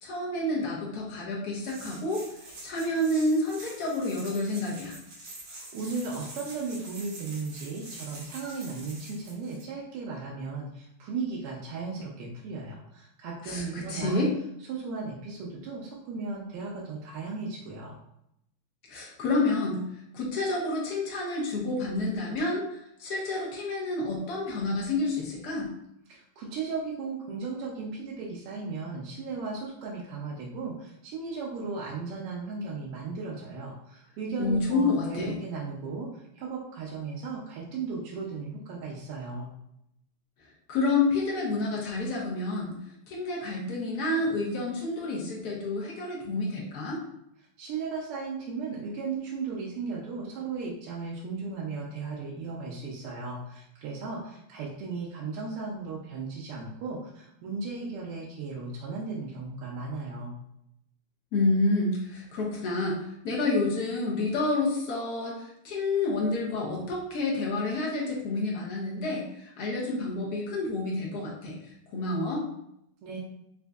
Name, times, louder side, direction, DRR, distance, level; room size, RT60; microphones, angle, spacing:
voice 1, 0.0-2.2 2.6-4.9 13.4-14.3 18.9-19.8 20.1-25.7 34.4-35.3 40.7-47.0 61.3-71.6 71.9-72.4, left 2 dB, 65° left, -3 dB, 1.0 m, -29 dB
sound 1, 1.5-9.6, right 2 dB, 65° right, 1.4 m, -46 dB
voice 2, 5.5-14.2 14.7-18.0 26.1-39.5 47.6-60.4 73.0-73.2, right 4 dB, 90° right, -4 dB, 1.6 m, -36 dB
4.3 x 2.5 x 2.3 m, 0.79 s
omnidirectional pair, 2.4 m